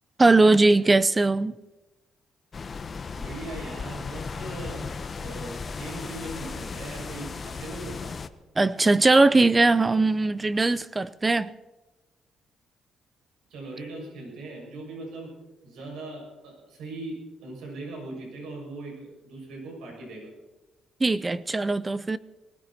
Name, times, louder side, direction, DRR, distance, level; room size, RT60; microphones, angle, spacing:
voice 1, 0.2-1.5 8.6-11.5 21.0-22.2, right 3 dB, 20° right, 0.5 m, -20 dB
sound 1, 2.5-8.3, left 5 dB, 40° left, 0.9 m, -36 dB
voice 2, 3.1-8.1 13.5-15.3 15.6-20.3, right 2 dB, 90° right, 6.7 m, -39 dB
20.5 x 16.0 x 4.3 m
cardioid pair, 90°, 0 cm